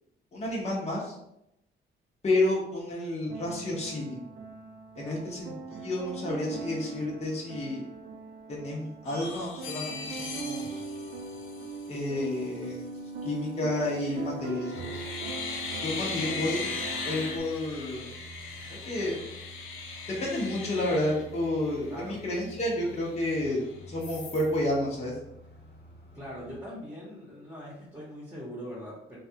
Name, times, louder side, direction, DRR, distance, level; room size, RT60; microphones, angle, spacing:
voice 1, 0.3-1.1 2.2-4.2 4.9-7.8 8.5-10.8 11.9-12.8 13.2-15.0 15.8-16.7 17.0-18.1 18.7-19.2 20.2-23.6 23.9-25.1, left 1 dB, 35° left, -4 dB, 0.9 m, -30 dB
sound 1, 3.3-17.4, right 4 dB, 75° right, 0.5 m, -40 dB
sound 2, 9.0-12.1 13.9-14.2 14.6-21.9 22.3-22.4 22.7-23.6 24.0-24.5, left 4 dB, 80° left, 0.7 m, -39 dB
sound 3, 15.6-26.6, right 2 dB, 55° left, 1.2 m, -49 dB
voice 2, 21.9-22.2 26.1-29.2, equal, 10° right, -6 dB, 1.1 m, -41 dB
3.2 x 2.3 x 2.8 m, 0.80 s
cardioid pair, 90°, 20 cm